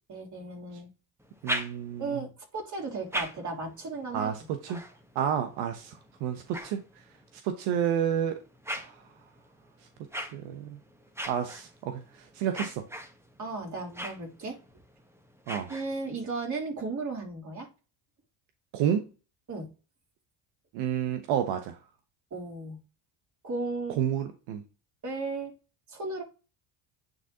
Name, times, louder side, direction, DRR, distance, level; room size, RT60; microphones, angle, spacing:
voice 1, 0.1-0.9 2.0-4.3 4.7-4.8 13.4-14.6 15.7-17.7 19.5-19.7 22.3-22.8 23.4-24.0 25.0-25.5 25.9-26.2, right 3 dB, 40° right, 3.1 m, -35 dB
sound 1, 1.2-2.2 2.8-7.4 8.0-16.3, equal, 5° right, 1.1 m, -41 dB
voice 2, 1.4-2.2 4.1-4.8 5.1-6.8 7.4-8.4 8.7-9.0 10.2-10.8 11.3-12.8 15.5-15.7 18.7-19.1 20.7-21.8 24.0-24.6, right 9 dB, 85° right, 0.9 m, -30 dB
9.1 x 3.9 x 2.8 m
supercardioid pair, 85°, 46 cm